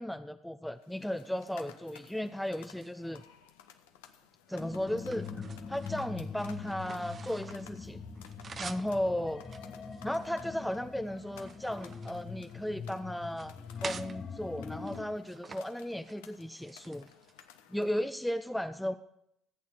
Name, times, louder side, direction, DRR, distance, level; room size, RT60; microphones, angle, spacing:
voice 1, 0.0-3.2 4.5-8.0 8.6-9.4 10.0-17.1 17.7-19.0, left 1 dB, 5° left, 9 dB, 0.6 m, -35 dB
sound 1, 0.8-18.1, left 9 dB, 75° left, 0.8 m, -57 dB
sound 2, 2.7-3.6 4.2-7.7 8.0-8.9 9.4-10.7 11.2-12.9 13.3-14.2 14.8-15.6 15.9-16.2 16.6-17.5, right 5 dB, 40° right, 0.8 m, -48 dB
sound 3, 4.6-15.0, left 5 dB, 40° left, 1.4 m, -43 dB
15.0 x 8.5 x 6.3 m, 0.77 s
hypercardioid pair, 55°, 0 cm